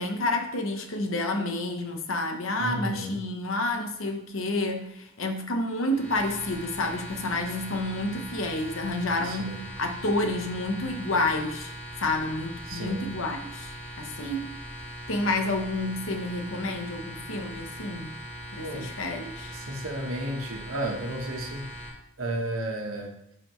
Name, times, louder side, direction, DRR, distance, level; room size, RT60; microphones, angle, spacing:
voice 1, 0.0-11.7 12.0-14.5 15.1-18.1 18.5-19.6, left 2 dB, 65° left, 5 dB, 0.9 m, -29 dB
voice 2, 2.6-3.2 9.2-9.7 12.7-13.1 18.6-18.9 19.5-21.7 22.2-23.1, right 1 dB, 75° right, 2 dB, 1.2 m, -33 dB
sound 1, 5.8-21.9, equal, 10° left, 2.8 m, -41 dB
10.5 x 4.1 x 3.1 m, 0.81 s
head